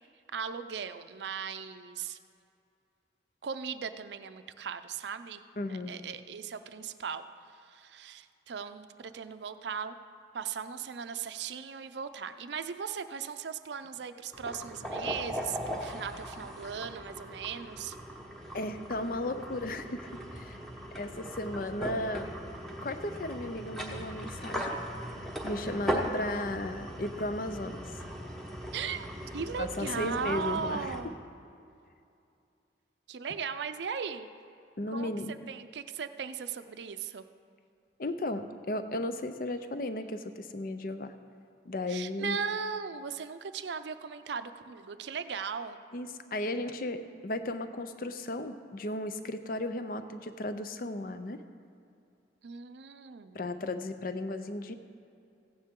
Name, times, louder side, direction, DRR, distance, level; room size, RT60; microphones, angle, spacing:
voice 1, 0.3-2.2 3.4-5.4 5.7-10.0 10.3-18.0 25.8-26.1 28.7-31.2 33.1-34.3 34.9-35.1 35.5-37.2 41.9-45.8 52.4-53.4, right 6 dB, 75° right, 10 dB, 0.5 m, -38 dB
voice 2, 5.6-5.9 18.5-20.6 20.9-22.3 22.8-24.8 25.4-28.0 29.6-30.9 34.8-35.5 38.0-41.1 41.7-42.4 45.9-51.4 53.3-54.7, left 1 dB, 50° left, 9 dB, 0.5 m, -35 dB
sound 1, 14.3-31.0, equal, ahead, 1.0 m, -39 dB
15.5 x 9.6 x 3.7 m, 2.5 s
head